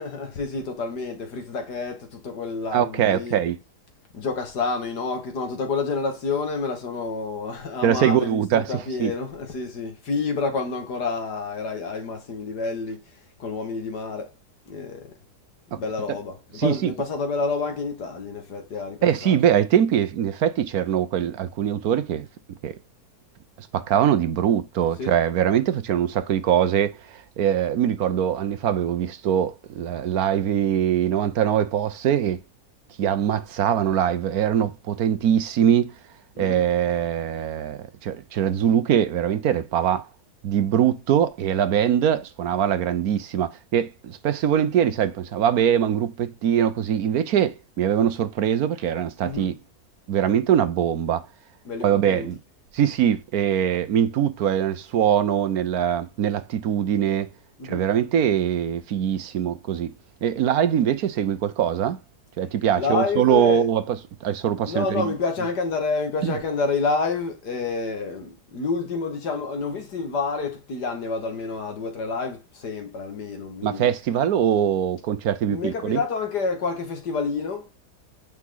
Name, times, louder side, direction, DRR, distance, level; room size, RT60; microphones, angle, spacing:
voice 1, 0.0-3.4 4.1-13.0 13.4-14.3 14.7-15.1 15.7-19.4 25.0-25.2 36.3-36.7 49.2-49.6 51.6-52.3 57.6-57.9 62.7-63.7 64.6-73.9 75.5-77.7, left 4 dB, 90° left, 2.5 m, -29 dB
voice 2, 2.7-3.6 7.8-9.1 15.7-15.8 16.1-16.2 16.6-16.9 19.0-22.3 22.6-22.7 23.6-32.4 33.0-35.9 36.4-40.1 40.4-49.5 50.1-51.2 51.8-52.4 52.7-57.3 57.6-59.9 60.2-62.0 62.4-65.1 66.2-66.4 73.6-76.0, right 9 dB, 70° right, 1.2 m, -22 dB
8.9 x 6.0 x 3.9 m
omnidirectional pair, 1.7 m